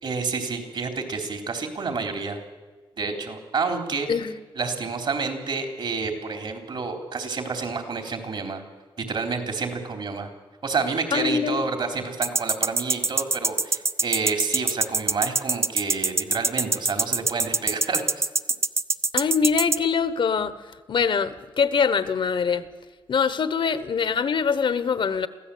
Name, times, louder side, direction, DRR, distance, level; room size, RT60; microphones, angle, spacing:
voice 1, 0.0-2.4 3.0-4.1 4.6-8.6 9.0-10.3 10.6-18.3, right 4 dB, 60° right, 5 dB, 3.9 m, -29 dB
voice 2, 11.1-11.6 19.1-20.5 20.9-22.7 23.1-25.3, left 6 dB, 65° left, 13 dB, 1.2 m, -23 dB
sound 1, 12.2-19.8, right 3 dB, 30° right, 0.7 m, -23 dB
24.0 x 15.5 x 8.7 m, 1.3 s
cardioid pair, 85°, 9 cm